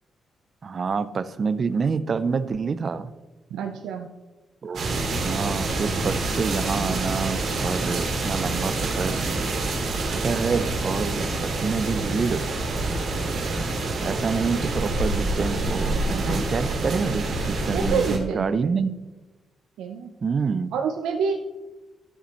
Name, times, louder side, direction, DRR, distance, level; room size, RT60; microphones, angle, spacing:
voice 1, 0.6-3.1 4.6-9.2 10.1-12.5 14.0-18.9 20.2-20.7, right 5 dB, 40° right, 14 dB, 0.5 m, -27 dB
voice 2, 3.5-4.1 17.7-18.7 19.8-20.1 20.7-21.3, right 6 dB, 90° right, 2 dB, 0.7 m, -27 dB
sound 1, 4.7-18.2, right 2 dB, 60° right, 2.5 m, -27 dB
13.0 x 7.0 x 3.1 m, 1.1 s
cardioid pair, 100°, 0 cm